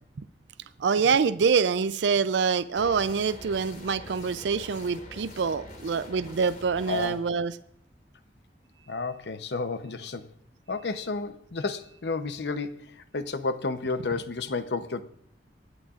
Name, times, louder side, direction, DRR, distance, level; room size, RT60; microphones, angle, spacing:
voice 1, 0.8-7.6, right 5 dB, 90° right, 0.4 m, -25 dB
sound 1, 2.8-7.1, left 1 dB, 50° left, 3.3 m, -44 dB
voice 2, 6.9-7.2 8.9-10.3 10.7-15.0, left 4 dB, 70° left, 0.8 m, -31 dB
25.0 x 9.9 x 2.5 m
head